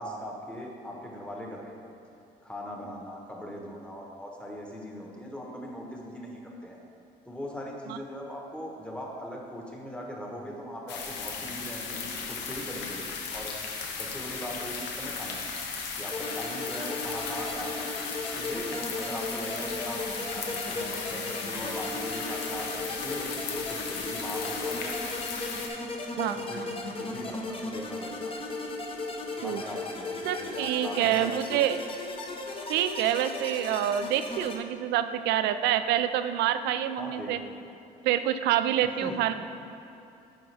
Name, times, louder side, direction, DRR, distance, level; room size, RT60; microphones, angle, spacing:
voice 1, 0.0-1.7 2.4-6.8 7.2-13.5 14.0-15.4 16.0-17.8 18.3-25.2 26.3-26.7 27.0-28.3 29.4-31.6 37.0-37.5 39.0-39.1, equal, 5° left, -1 dB, 1.1 m, -40 dB
sound 1, 10.9-25.7, left 5 dB, 90° left, 0.8 m, -36 dB
sound 2, 16.1-34.6, left 2 dB, 35° left, 0.8 m, -36 dB
voice 2, 30.2-31.8 32.7-37.4 38.0-39.3, right 11 dB, 80° right, 11 dB, 0.4 m, -27 dB
9.1 x 5.3 x 3.3 m, 2.8 s
cardioid pair, 110°, 17 cm